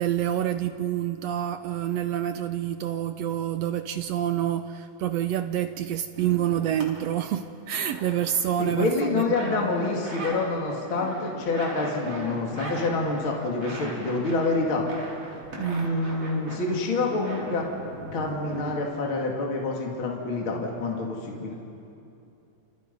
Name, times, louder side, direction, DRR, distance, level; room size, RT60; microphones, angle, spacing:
voice 1, 0.0-9.6 15.6-15.9, right 11 dB, 75° right, 9 dB, 1.6 m, -27 dB
sound 1, 6.1-6.8 7.2-10.4 10.7-18.8, right 2 dB, 45° right, 5.1 m, -39 dB
voice 2, 8.6-14.8 15.6-17.7 18.1-21.6, left 3 dB, 40° left, -1 dB, 3.2 m, -27 dB
30.0 x 29.5 x 5.5 m, 2.8 s
omnidirectional pair, 3.6 m